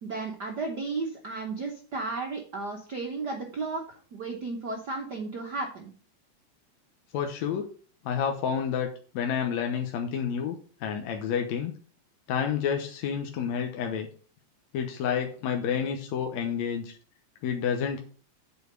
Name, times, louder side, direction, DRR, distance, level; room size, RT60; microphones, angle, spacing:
voice 1, 0.0-5.9, right 3 dB, 75° right, 2 dB, 0.9 m, -34 dB
voice 2, 7.1-7.7 8.1-11.7 12.3-14.1 14.7-17.0 17.4-18.0, left 7 dB, 70° left, 3 dB, 2.1 m, -29 dB
8.7 x 4.6 x 6.7 m, 0.42 s
omnidirectional pair, 3.5 m